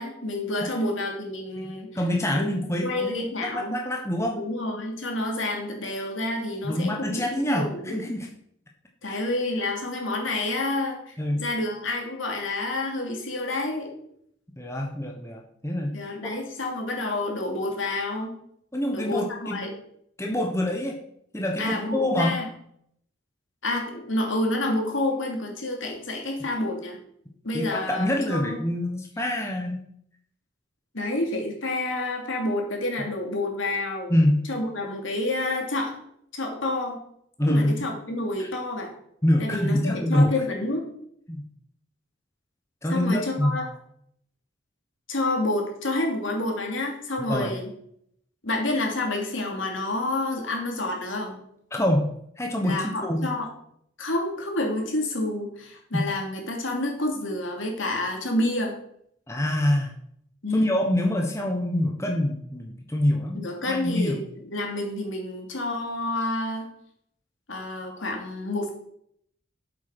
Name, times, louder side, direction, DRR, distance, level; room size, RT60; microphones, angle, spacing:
voice 1, 0.0-2.0 2.3-2.5 2.8-3.8 4.3-8.0 9.0-13.9 15.9-18.4 18.9-19.7 21.6-22.5 23.6-27.0 27.4-28.6 30.9-34.1 34.5-36.0 36.3-37.0 37.5-38.9 39.4-40.9 42.9-43.7 45.1-47.7 48.4-51.4 52.6-53.5 54.0-58.7 60.4-60.8 63.3-66.7 67.5-68.7, left 2 dB, 80° left, 1 dB, 2.8 m, -29 dB
voice 2, 1.6-4.4 6.6-8.3 9.0-9.2 11.2-11.4 14.6-15.9 16.2-16.4 18.7-19.7 20.2-21.0 21.3-22.4 27.5-29.8 34.1-34.4 37.4-37.9 38.4-38.5 39.2-40.3 41.3-41.4 42.8-43.5 47.2-47.5 51.7-52.1 52.4-53.3 55.9-56.1 59.3-59.9 60.5-64.2, left 1 dB, 15° left, 1 dB, 1.2 m, -26 dB
8.5 x 7.9 x 6.1 m, 0.70 s
head